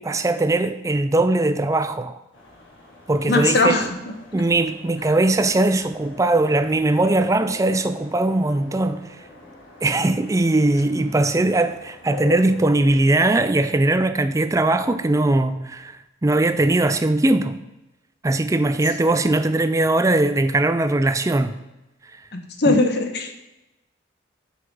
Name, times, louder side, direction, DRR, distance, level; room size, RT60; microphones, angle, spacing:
voice 1, 0.0-2.2 3.1-3.8 4.3-9.0 9.8-17.6 18.2-21.6 22.7-22.8, right 2 dB, 15° right, 0.3 m, -20 dB
sound 1, 2.3-13.1, left 3 dB, 70° left, 2.5 m, -43 dB
voice 2, 3.3-3.9 22.3-23.4, left 3 dB, 55° left, 1.0 m, -20 dB
6.1 x 5.8 x 5.4 m
head